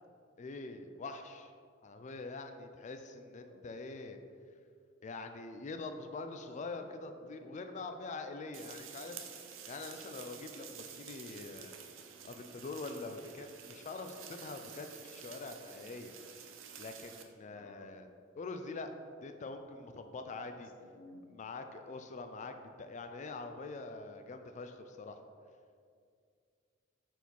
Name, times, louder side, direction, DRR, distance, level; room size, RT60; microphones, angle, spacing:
voice 1, 0.4-1.5 1.8-4.2 5.0-9.2 9.7-11.7 12.2-16.1 16.8-18.1 18.4-18.9 19.2-20.7 21.3-25.2, left 3 dB, 40° left, 7 dB, 0.4 m, -44 dB
voice 2, 2.9-3.7 6.7-7.5 17.4-18.0 20.5-21.3, left 2 dB, 85° left, 4 dB, 0.7 m, -57 dB
sound 1, 8.5-17.2, right 7 dB, 90° right, 0.6 m, -50 dB
5.3 x 4.4 x 4.5 m, 2.2 s
head